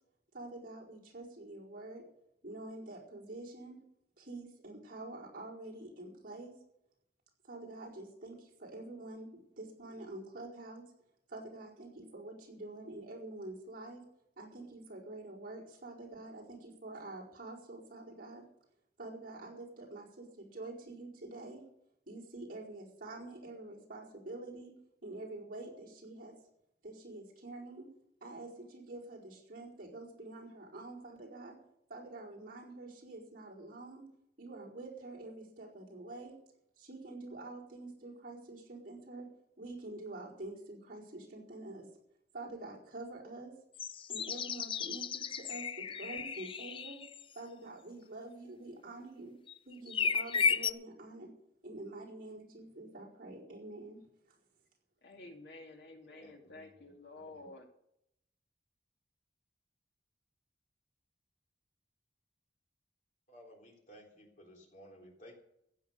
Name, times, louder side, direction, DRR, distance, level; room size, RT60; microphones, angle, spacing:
voice 1, 0.3-2.0 2.4-3.8 4.2-6.5 7.4-10.8 11.3-14.0 14.4-18.4 19.0-21.6 22.1-24.7 25.0-26.3 26.8-27.9 28.2-31.6 31.9-34.1 34.4-36.4 36.8-39.3 39.6-41.9 42.3-43.6 44.1-47.0 47.3-49.3 49.6-51.3 51.6-54.0, right 2 dB, 50° right, -4 dB, 4.7 m, -47 dB
sound 1, 43.8-47.2 49.5-49.6 49.9-50.7, left 6 dB, 30° left, 0.4 m, -34 dB
voice 2, 55.0-57.7, left 2 dB, 65° left, 2 dB, 2.4 m, -51 dB
voice 3, 56.1-56.6 57.1-57.5 63.3-65.4, equal, 45° left, 0 dB, 3.7 m, -56 dB
15.5 x 8.9 x 6.8 m, 0.78 s
head